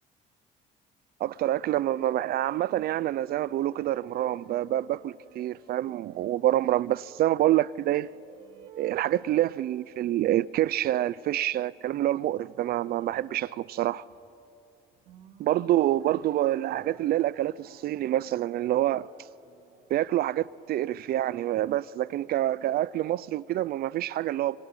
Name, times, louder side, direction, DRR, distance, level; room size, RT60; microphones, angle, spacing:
voice 1, 1.2-8.1 8.8-14.0 15.4-19.1 19.9-24.6, right 13 dB, 65° right, 0.6 m, -27 dB
sound 1, 2.2-20.7, right 6 dB, 80° right, 4.0 m, -55 dB
26.0 x 25.0 x 8.9 m
cardioid pair, 110°, 17 cm